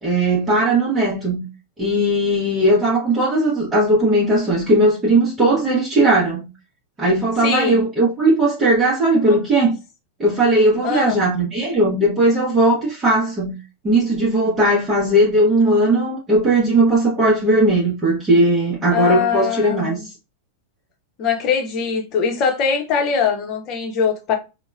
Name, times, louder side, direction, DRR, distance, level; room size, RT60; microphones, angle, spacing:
voice 1, 0.0-1.5 1.8-6.5 7.0-9.8 10.2-13.6 13.8-20.0, right 1 dB, 20° right, 0.9 m, -17 dB
voice 2, 7.4-7.8 10.8-11.2 18.9-20.0 21.2-24.3, left 6 dB, 35° left, 0.9 m, -21 dB
4.1 x 2.2 x 2.3 m
figure-of-eight pair, 90°, 0 cm